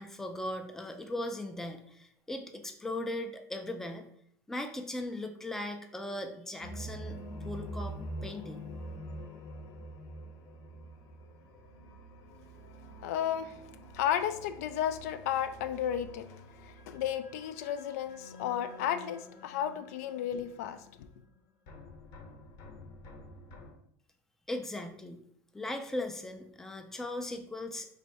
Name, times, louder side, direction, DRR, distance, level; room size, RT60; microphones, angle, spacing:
voice 1, 0.0-4.1 4.5-7.2 7.4-8.0 8.2-8.6 24.5-25.3 25.5-27.9, left 1 dB, 5° left, 5 dB, 0.4 m, -38 dB
sound 1, 6.6-21.4 21.7-23.7, equal, 50° left, 0.7 m, -46 dB
voice 2, 13.0-13.6 13.9-16.3 16.6-21.1, left 10 dB, 85° left, 10 dB, 0.4 m, -33 dB
3.2 x 2.6 x 4.4 m, 0.68 s
supercardioid pair, 140°, 8 cm